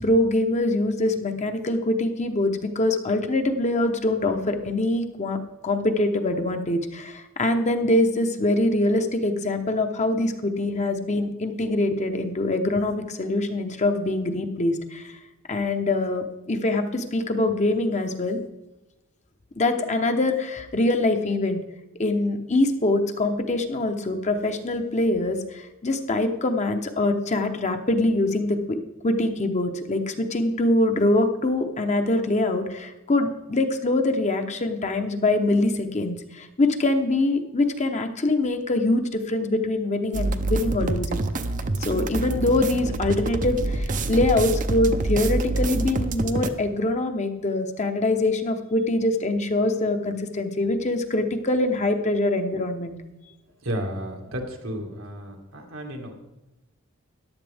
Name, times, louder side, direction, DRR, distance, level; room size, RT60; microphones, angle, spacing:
voice 1, 0.0-15.2 15.5-18.4 19.6-21.6 22.0-41.3 41.8-53.0, left 2 dB, 35° left, 6 dB, 0.9 m, -24 dB
sound 1, 40.1-46.5, right 2 dB, 40° right, 0.6 m, -26 dB
voice 2, 53.6-56.1, equal, 90° right, 1 dB, 2.0 m, -32 dB
14.0 x 10.0 x 3.5 m, 1.0 s
head